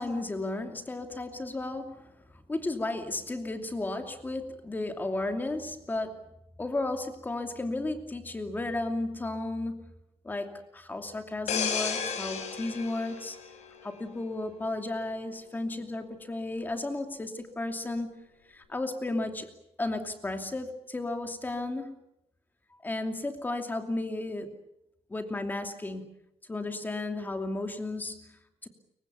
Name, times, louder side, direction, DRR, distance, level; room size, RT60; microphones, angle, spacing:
voice 1, 0.0-6.2 6.6-9.8 10.2-13.4 13.8-18.1 18.5-19.5 19.8-22.0 22.8-24.6 25.1-26.1 26.5-28.7, left 2 dB, 15° left, 6 dB, 2.7 m, -34 dB
sound 1, 11.5-14.2 14.6-14.8, left 6 dB, 85° left, 6.0 m, -33 dB
29.5 x 24.0 x 7.0 m, 0.85 s
wide cardioid pair, 170°, 11 cm